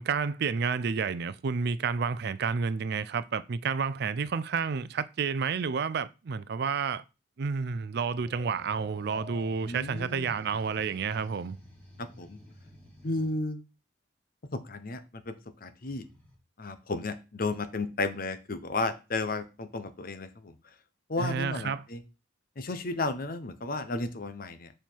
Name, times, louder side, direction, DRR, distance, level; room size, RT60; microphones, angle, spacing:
voice 1, 0.0-7.0 7.4-11.6 21.2-21.8, right 5 dB, 60° right, 0.4 m, -30 dB
sound 1, 8.0-10.0, left 3 dB, 15° right, 2.5 m, -51 dB
sound 2, 8.1-13.4 15.8-16.3, equal, 10° left, 3.6 m, -53 dB
voice 2, 9.6-10.3 12.0-12.4 13.0-13.6 14.5-15.3 15.6-16.1 16.6-20.6 21.1-22.0 22.6-24.7, left 2 dB, 50° left, 0.8 m, -33 dB
7.3 x 4.4 x 4.5 m
head